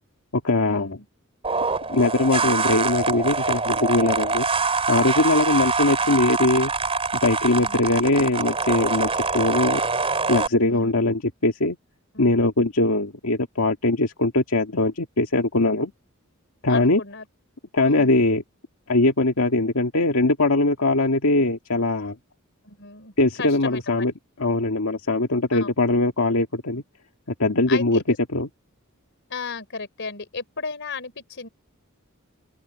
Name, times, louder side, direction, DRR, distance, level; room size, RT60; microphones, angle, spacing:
voice 1, 0.3-1.0 1.9-4.5 4.9-6.7 7.2-9.8 10.3-11.8 12.2-15.9 16.6-17.0 17.7-18.4 18.9-22.2 23.2-24.1 24.4-26.8 27.4-28.0 28.3-28.5, left 2 dB, 85° left, 2.0 m, -21 dB
sound 1, 1.4-10.5, right 4 dB, 30° right, 3.6 m, -24 dB
voice 2, 7.5-7.8 10.7-11.1 12.1-12.3 16.7-17.3 17.8-18.2 22.6-23.8 25.5-25.7 27.7-28.0 29.3-31.5, left 4 dB, 60° left, 3.9 m, -35 dB
open air
head